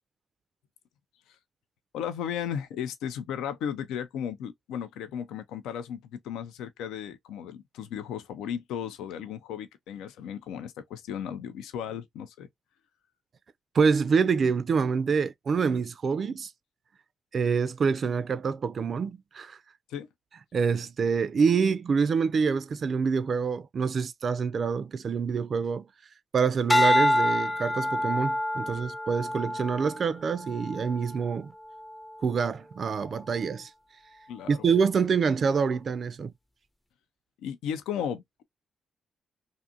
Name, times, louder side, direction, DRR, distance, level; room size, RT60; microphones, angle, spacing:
voice 1, 1.9-12.5 19.9-20.1 34.3-34.7 37.4-38.4, left 8 dB, 90° left, 0.3 m, -35 dB
voice 2, 13.7-16.5 17.3-19.6 20.5-25.9 26.3-31.5 32.2-33.7 34.5-36.3, right 5 dB, 55° right, 0.3 m, -26 dB
sound 1, 26.7-31.1 31.7-32.1, left 1 dB, 15° left, 0.5 m, -27 dB
2.5 x 2.4 x 2.6 m
supercardioid pair, 60°, 0 cm